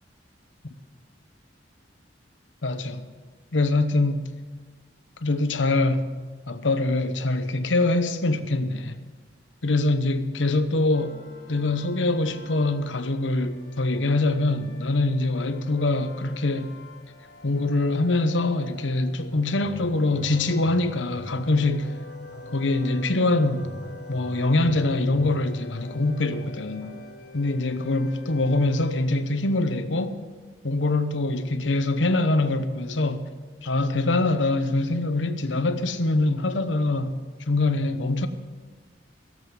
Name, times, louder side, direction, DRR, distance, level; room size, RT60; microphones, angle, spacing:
voice 1, 2.6-3.0 3.5-4.3 5.2-6.1 6.5-9.0 9.6-11.2 11.5-16.8 17.4-21.9 22.5-23.7 24.1-27.0 27.3-30.2 30.6-33.3 33.6-37.2 37.5-38.3, left 2 dB, 85° left, 1.0 m, -24 dB
sound 1, 10.9-29.0, left 3 dB, 60° left, 1.5 m, -46 dB
sound 2, 19.3-27.2, right 1 dB, 15° left, 2.5 m, -44 dB
16.5 x 7.7 x 7.6 m
head